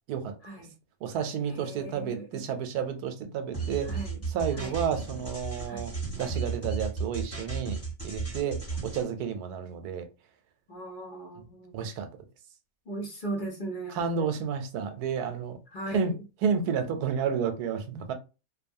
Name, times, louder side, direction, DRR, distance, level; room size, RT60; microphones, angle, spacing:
voice 1, 0.4-0.7 1.5-2.4 3.8-4.2 4.5-4.8 5.7-6.0 10.7-11.9 12.9-14.3 15.7-16.1, right 2 dB, 50° left, 0.6 m, -38 dB
voice 2, 1.0-3.9 4.3-7.8 8.0-10.1 11.7-12.1 14.0-15.6 15.9-16.1 16.4-18.1, right 7 dB, 85° right, 1.1 m, -31 dB
sound 1, 3.5-9.0, right 4 dB, 10° left, 1.0 m, -34 dB
2.7 x 2.3 x 2.6 m
omnidirectional pair, 1.6 m